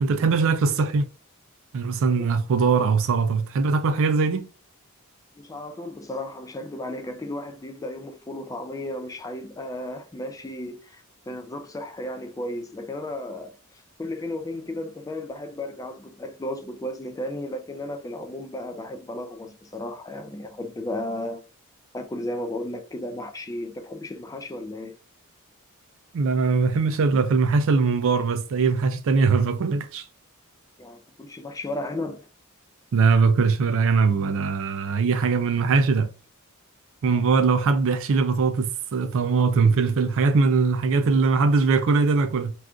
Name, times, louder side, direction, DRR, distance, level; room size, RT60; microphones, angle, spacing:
voice 1, 0.0-1.1 1.7-4.5 26.1-30.0 32.9-36.1 37.0-42.5, right 4 dB, 65° right, 0.4 m, -21 dB
voice 2, 5.4-21.4 21.9-25.0 30.8-32.3 37.1-37.2, left 1 dB, 15° left, 0.4 m, -34 dB
2.5 x 2.4 x 3.5 m
head